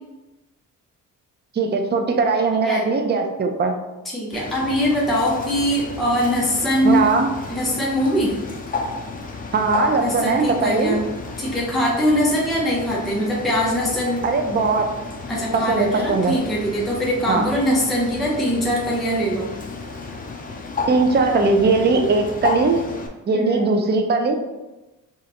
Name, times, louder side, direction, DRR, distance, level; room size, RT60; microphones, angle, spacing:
voice 1, 1.5-3.8 6.8-7.3 9.5-11.0 14.2-14.9 15.5-16.4 17.3-17.4 20.9-22.8 23.3-24.4, right 4 dB, 30° right, 4 dB, 0.5 m, -19 dB
voice 2, 4.0-7.1 7.5-8.3 10.0-11.0 11.4-14.2 15.3-19.5 23.3-23.7, equal, ahead, -5 dB, 0.9 m, -22 dB
Bird, 4.3-23.1, left 3 dB, 25° left, 0.6 m, -32 dB
5.0 x 2.5 x 2.9 m, 1.1 s
cardioid pair, 110°, 33 cm